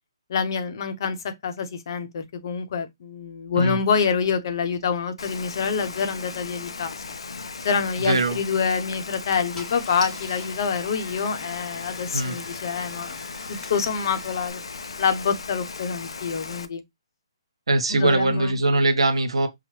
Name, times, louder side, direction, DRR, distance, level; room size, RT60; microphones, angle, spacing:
voice 1, 0.3-7.0 7.6-13.2 13.5-14.6 15.0-16.8 17.9-18.6, left 6 dB, 50° left, 0.8 m, -26 dB
Rain, 5.2-16.6, left 4 dB, 80° left, 0.5 m, -37 dB
voice 2, 8.0-8.4 12.1-12.4 17.7-19.5, right 2 dB, 85° right, 0.9 m, -21 dB
Car / Engine starting, 9.5-14.5, left 2 dB, 10° left, 1.0 m, -44 dB
5.7 x 2.1 x 3.1 m
hypercardioid pair, 150°, 3 cm